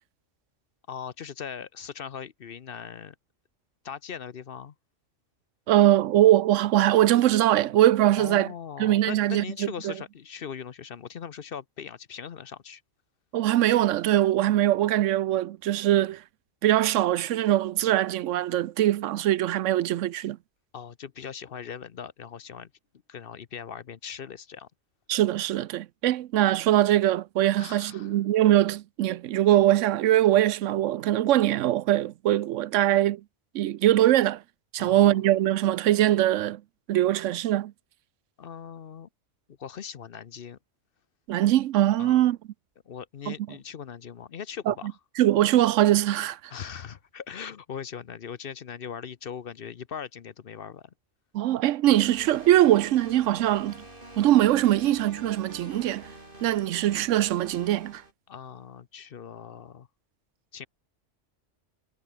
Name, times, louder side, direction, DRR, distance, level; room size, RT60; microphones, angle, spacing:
voice 1, 0.9-3.1 3.8-4.7 8.2-12.8 20.7-22.7 23.1-24.7 27.6-28.1 34.8-35.2 38.4-39.1 39.5-40.6 42.0-42.2 42.9-45.0 46.5-50.9 58.3-59.9 60.5-60.7, left 7 dB, 55° left, 0.9 m, -40 dB
voice 2, 5.7-8.5 8.8-9.4 9.8-9.9 13.3-16.2 16.6-20.4 25.1-33.2 33.5-34.4 34.7-36.6 36.9-37.7 41.3-42.4 43.3-43.4 44.7-44.8 45.2-46.4 51.3-53.8 54.2-56.1 56.4-58.0, right 13 dB, 85° right, 1.0 m, -22 dB
sound 1, 51.8-58.1, right 1 dB, 45° right, 5.9 m, -46 dB
omnidirectional pair, 1.2 m